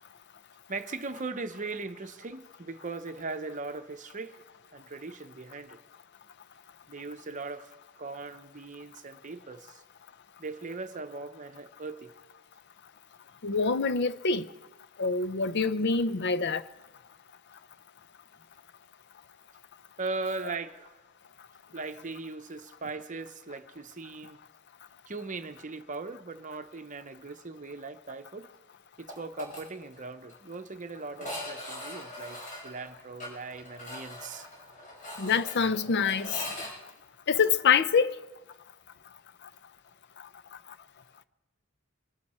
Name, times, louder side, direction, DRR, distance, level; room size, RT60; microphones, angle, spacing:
voice 1, 0.7-4.4 4.7-5.8 6.9-9.8 10.4-12.1 20.0-20.9 21.7-24.4 25.1-28.5 29.0-32.4 32.6-34.5, right 3 dB, 35° right, 0.8 m, -39 dB
voice 2, 13.4-14.5 15.0-16.6 35.2-36.4 37.3-38.1, left 5 dB, 55° left, 0.6 m, -25 dB
sound 1, 29.1-29.6 29.9-30.0 30.3-30.4 31.1-36.7, left 1 dB, 40° left, 5.9 m, -41 dB
24.5 x 12.5 x 4.3 m
head